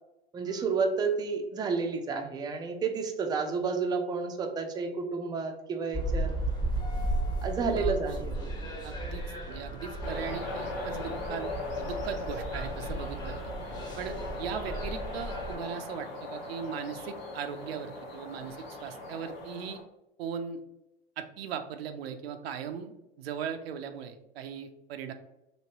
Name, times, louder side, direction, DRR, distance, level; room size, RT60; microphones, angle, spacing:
voice 1, 0.3-6.3 7.4-8.5, right 5 dB, 15° right, 4 dB, 0.4 m, -31 dB
sound 1, 5.9-15.6, right 1 dB, 15° left, 0.8 m, -34 dB
voice 2, 7.7-8.3 8.8-9.2 9.5-11.5 11.8-13.5 14.0-19.8 20.2-20.6 21.2-25.1, right 7 dB, 80° right, 8 dB, 0.5 m, -38 dB
sound 2, 10.0-19.8, left 3 dB, 85° left, 1.0 m, -39 dB
3.0 x 2.8 x 2.8 m, 0.90 s
hypercardioid pair, 90°, 30 cm